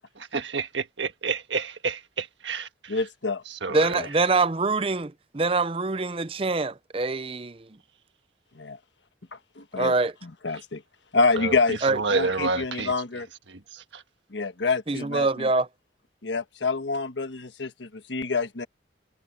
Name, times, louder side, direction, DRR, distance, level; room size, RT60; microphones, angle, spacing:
voice 1, 0.2-2.9 3.5-4.0 11.4-12.9 13.5-14.0, right 4 dB, 90° right, 1.5 m, -30 dB
voice 2, 2.9-3.4 3.9-4.1 8.5-8.8 9.3-9.9 10.2-10.8 11.1-11.8 12.1-13.3 14.3-15.5 16.2-18.7, left 3 dB, 90° left, 1.3 m, -27 dB
voice 3, 3.7-7.6 9.8-10.1 11.8-12.0 14.9-15.7, right 3 dB, 30° right, 0.6 m, -24 dB
head